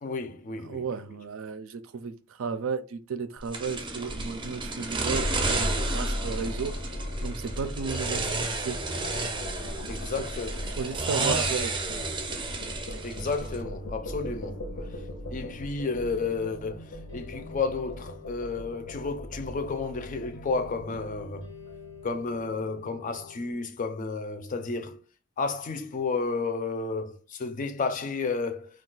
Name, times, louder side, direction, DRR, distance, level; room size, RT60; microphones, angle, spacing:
voice 1, 0.0-0.8 9.9-10.7 13.0-14.6 14.9-15.0 15.3-21.5 22.0-25.0 25.4-28.7, left 4 dB, 40° left, 0.4 m, -32 dB
voice 2, 0.6-8.8 10.8-11.7, right 5 dB, 90° right, 0.4 m, -34 dB
sound 1, 3.5-13.6, right 3 dB, 25° right, 0.5 m, -32 dB
sound 2, 5.1-22.3, left 1 dB, 70° left, 0.7 m, -37 dB
sound 3, 14.0-23.5, left 1 dB, 90° left, 1.2 m, -49 dB
2.3 x 2.3 x 3.8 m
head